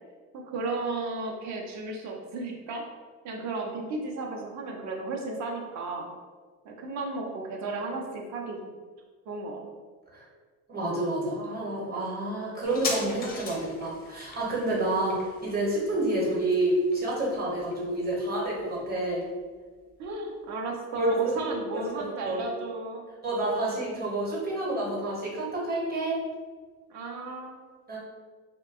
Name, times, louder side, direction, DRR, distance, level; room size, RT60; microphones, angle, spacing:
voice 1, 0.3-2.8 3.2-6.1 6.6-8.6 9.3-9.6 20.0-23.0 26.9-27.5, right 3 dB, 50° right, 1 dB, 0.6 m, -34 dB
voice 2, 10.7-19.3 21.0-21.6 21.9-22.4 23.2-26.2 27.9-28.0, right 1 dB, 25° right, -4 dB, 0.9 m, -29 dB
sound 1, 12.6-19.7 20.0-20.1, left 3 dB, 25° left, 0.4 m, -40 dB
2.7 x 2.2 x 2.4 m, 1.5 s
cardioid pair, 105°, 36 cm